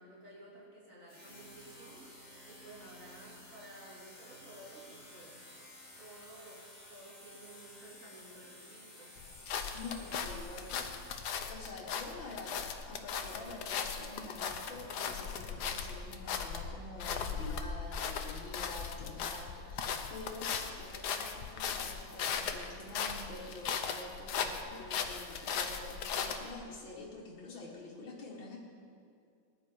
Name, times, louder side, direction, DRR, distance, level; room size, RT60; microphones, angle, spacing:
voice 1, 0.0-2.1 2.4-5.4 6.0-9.2, right 1 dB, 40° right, -6 dB, 3.6 m, -54 dB
sound 1, 1.1-11.6, left 1 dB, 20° left, 3.6 m, -54 dB
sound 2, 9.2-26.6, left 6 dB, 65° left, 1.3 m, -38 dB
voice 2, 9.7-11.1 11.5-28.6, left 2 dB, 90° left, -6 dB, 2.3 m, -47 dB
20.0 x 10.0 x 4.6 m, 2.4 s
omnidirectional pair, 2.1 m